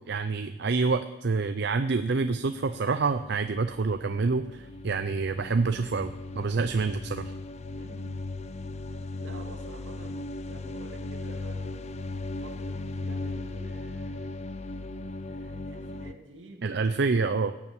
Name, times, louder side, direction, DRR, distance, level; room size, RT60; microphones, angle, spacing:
voice 1, 0.0-7.3 16.6-17.5, right 4 dB, 60° right, 10 dB, 0.6 m, -27 dB
sound 1, 1.9-16.1, left 2 dB, 35° left, 0.6 m, -38 dB
voice 2, 7.7-8.2 9.2-12.1 12.4-14.4 15.3-16.8, right 1 dB, 80° right, 3 dB, 2.5 m, -49 dB
17.5 x 7.2 x 8.4 m, 1.0 s
head